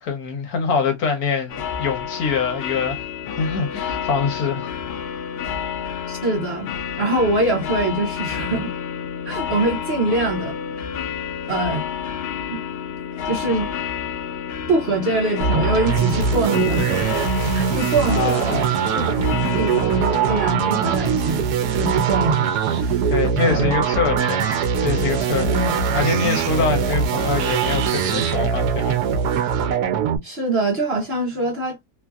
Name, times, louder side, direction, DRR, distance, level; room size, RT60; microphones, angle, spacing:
voice 1, 0.0-3.0 3.4-4.7 18.1-18.6 23.1-24.4 24.8-25.6 25.9-29.0, left 5 dB, 70° left, 1.4 m, -24 dB
sound 1, 1.5-20.5, left 7 dB, 85° left, 0.5 m, -29 dB
voice 2, 6.1-6.7 7.0-8.7 9.2-10.5 11.5-11.9 12.5-12.6 13.2-13.7 14.7-17.1 17.5-23.1 23.4-23.7 25.5-25.8 30.2-31.8, right 2 dB, 45° right, 1.0 m, -24 dB
sound 2, 15.4-30.2, right 7 dB, 80° right, 1.1 m, -21 dB
3.1 x 2.5 x 2.2 m
omnidirectional pair, 1.7 m